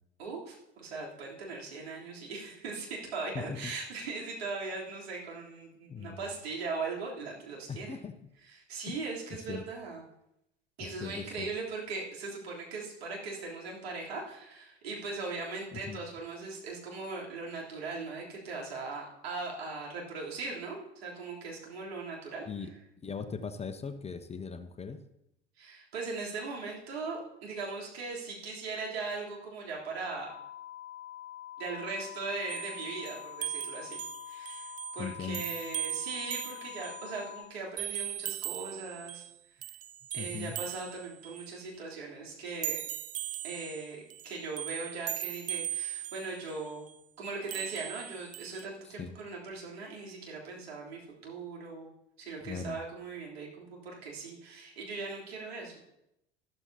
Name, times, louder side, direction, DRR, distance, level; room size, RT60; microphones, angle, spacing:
voice 1, 0.2-8.0 8.4-10.0 10.8-22.5 25.6-30.3 31.6-39.2 40.1-42.8 43.4-46.9 47.2-51.9 52.2-55.7, right 3 dB, 75° right, -4 dB, 3.5 m, -39 dB
voice 2, 3.3-3.7 5.9-6.2 7.7-8.1 8.9-9.0 9.5-9.6 10.8-11.5 15.7-16.0 22.4-22.7 23.0-25.0 35.0-35.4 40.2-40.5 48.8-49.1 52.4-52.8, left 5 dB, 20° left, 9 dB, 0.9 m, -39 dB
sound 1, 30.3-37.5, left 12 dB, 40° left, 2.2 m, -45 dB
sound 2, 32.5-37.3 37.8-39.4 39.6-41.6 42.5-46.9 47.5-48.7, right 13 dB, 25° right, 0.4 m, -39 dB
13.0 x 13.0 x 2.9 m, 0.83 s
figure-of-eight pair, 70°, 31 cm